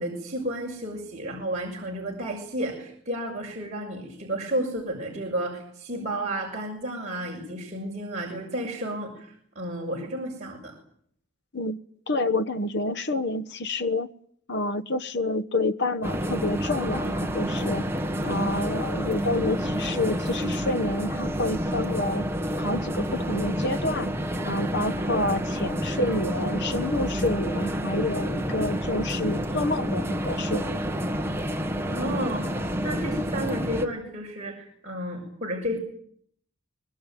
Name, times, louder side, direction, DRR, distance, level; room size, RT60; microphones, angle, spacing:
voice 1, 0.0-10.7 31.9-35.8, right 1 dB, 35° right, -2 dB, 6.1 m, -32 dB
voice 2, 12.1-14.1 14.5-17.9 18.2-22.2 22.6-24.1 24.4-30.8, left 2 dB, 55° left, 12 dB, 1.2 m, -28 dB
sound 1, 16.0-33.9, equal, 10° right, 1.7 m, -29 dB
24.5 x 21.0 x 9.3 m, 0.64 s
head